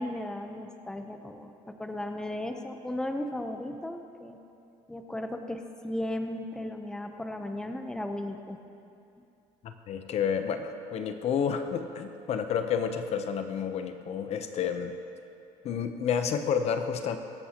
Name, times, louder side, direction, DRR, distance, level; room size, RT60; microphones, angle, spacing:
voice 1, 0.0-4.4 4.9-8.6, left 1 dB, 5° left, 5 dB, 0.7 m, -36 dB
voice 2, 9.6-14.9 15.6-17.2, left 7 dB, 55° left, 8 dB, 0.8 m, -30 dB
24.0 x 8.3 x 2.9 m, 2.6 s
cardioid pair, 110°, 13 cm